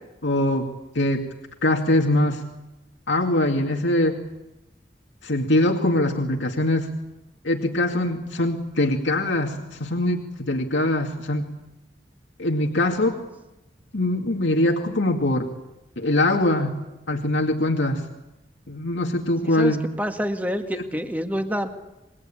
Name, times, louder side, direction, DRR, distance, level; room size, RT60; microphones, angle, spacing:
voice 1, 0.2-0.7 0.9-1.3 1.6-2.4 3.1-4.2 5.2-6.9 7.4-11.5 12.4-13.2 13.9-15.5 16.0-16.8 17.1-18.1 18.7-19.8 20.7-20.8, left 1 dB, 85° left, 2 dB, 2.3 m, -22 dB
voice 2, 19.4-21.7, equal, 10° right, 5 dB, 1.8 m, -27 dB
27.5 x 22.5 x 8.7 m, 0.96 s
head